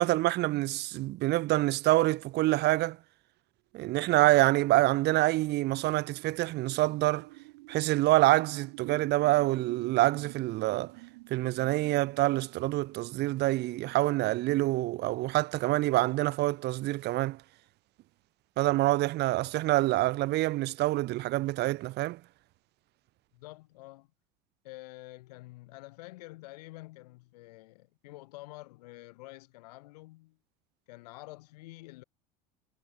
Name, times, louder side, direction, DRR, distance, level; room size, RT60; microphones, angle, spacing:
voice 1, 0.0-3.0 3.7-7.3 7.7-10.9 11.3-17.4 18.6-22.2, right 18 dB, 55° right, 2.3 m, -26 dB
sound 1, 6.4-15.9, right 23 dB, 70° right, 4.7 m, -51 dB
voice 2, 23.3-24.1 24.6-30.4 30.9-32.0, left 20 dB, 70° left, 4.2 m, -48 dB
hypercardioid pair, 85°, 21 cm